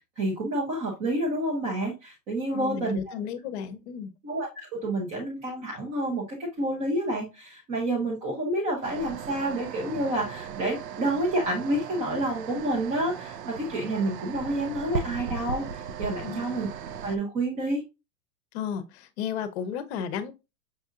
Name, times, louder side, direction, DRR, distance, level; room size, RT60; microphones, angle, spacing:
voice 1, 0.2-3.1 4.2-16.7 17.0-17.8, right 1 dB, 15° right, 0.4 m, -29 dB
voice 2, 2.5-4.1 16.2-16.5 18.5-20.3, left 8 dB, 45° left, 0.7 m, -33 dB
sound 1, 8.8-17.2, right 6 dB, 85° right, 0.7 m, -37 dB
6.2 x 2.6 x 2.4 m
hypercardioid pair, 145°, 48 cm